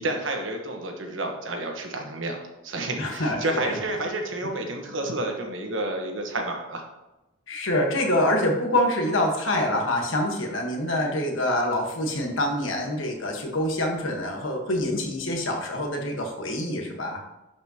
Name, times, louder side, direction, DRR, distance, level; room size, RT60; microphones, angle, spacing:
voice 1, 0.0-6.8, right 2 dB, 70° right, 3 dB, 1.3 m, -30 dB
voice 2, 3.0-3.7 7.5-17.2, left 1 dB, 75° left, 2 dB, 1.4 m, -26 dB
11.0 x 5.1 x 2.9 m, 0.98 s
head